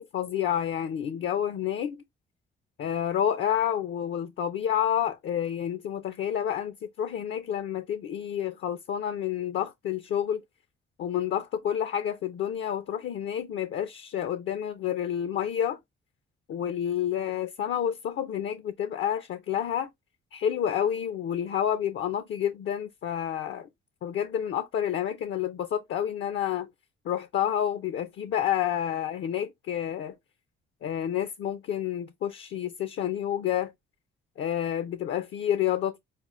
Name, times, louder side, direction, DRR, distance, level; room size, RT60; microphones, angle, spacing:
voice 1, 0.0-2.0 2.8-10.4 11.0-15.8 16.5-19.9 20.3-23.7 24.0-26.7 27.0-30.2 30.8-33.7 34.4-36.0, left 10 dB, 70° left, 0.5 m, -29 dB
5.7 x 2.0 x 3.0 m
cardioid pair, 90°, 20 cm